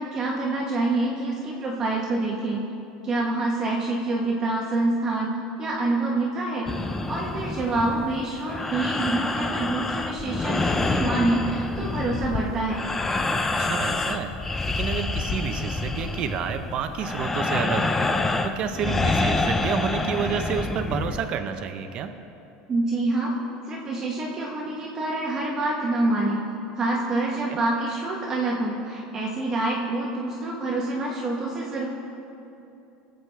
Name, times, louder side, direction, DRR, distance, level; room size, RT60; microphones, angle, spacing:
voice 1, 0.0-2.6 3.0-12.8 22.7-23.4 23.6-26.4 26.7-31.9, right 2 dB, 25° right, -3 dB, 1.1 m, -26 dB
sound 1, 6.7-21.3, left 3 dB, 10° left, 0.5 m, -27 dB
voice 2, 13.6-14.4 14.8-18.0 18.4-22.1 27.5-27.6, right 8 dB, 40° right, 8 dB, 0.7 m, -29 dB
19.0 x 7.8 x 3.4 m, 2.8 s
supercardioid pair, 145°, 2 cm